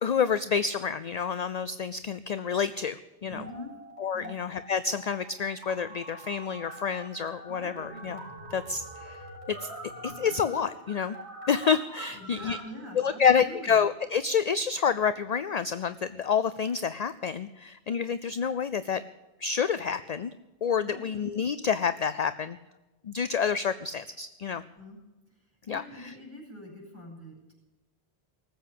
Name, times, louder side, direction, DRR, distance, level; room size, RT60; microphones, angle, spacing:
voice 1, 0.0-3.4 4.0-8.2 8.5-9.7 10.0-11.2 11.5-12.6 13.0-19.0 19.4-20.3 20.6-22.6 23.0-24.6 25.7-26.1, left 6 dB, 50° left, 13 dB, 0.6 m, -28 dB
voice 2, 3.2-3.7 4.1-4.3 12.1-13.8 20.8-21.1 24.7-25.0 25.7-27.5, left 1 dB, 15° right, -2 dB, 6.7 m, -44 dB
sound 1, 3.4-4.3 4.6-12.6, right 1 dB, 80° right, 3.5 m, -44 dB
19.0 x 8.0 x 8.2 m, 1.1 s
omnidirectional pair, 1.1 m